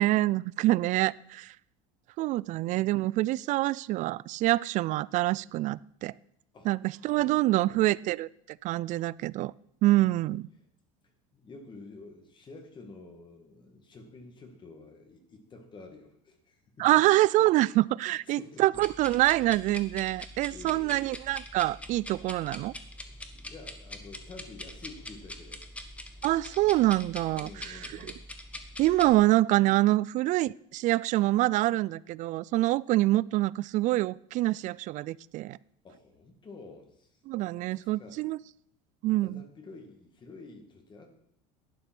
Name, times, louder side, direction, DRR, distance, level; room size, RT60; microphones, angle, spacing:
voice 1, 0.0-1.5 2.2-6.1 6.6-9.5 9.8-10.5 16.8-22.7 26.2-28.1 28.8-35.6 37.3-38.4 39.0-39.4, right 17 dB, 50° right, 22 dB, 0.4 m, -26 dB
voice 2, 7.0-7.8 11.0-16.9 18.3-18.8 20.5-21.1 23.3-25.6 27.4-28.3 35.5-35.6 35.8-37.2 37.6-38.2 39.2-41.1, left 3 dB, 30° left, 5 dB, 2.1 m, -49 dB
sound 1, 18.7-29.1, left 1 dB, 10° left, 1.2 m, -44 dB
11.5 x 8.7 x 6.1 m, 0.70 s
supercardioid pair, 120°, 16 cm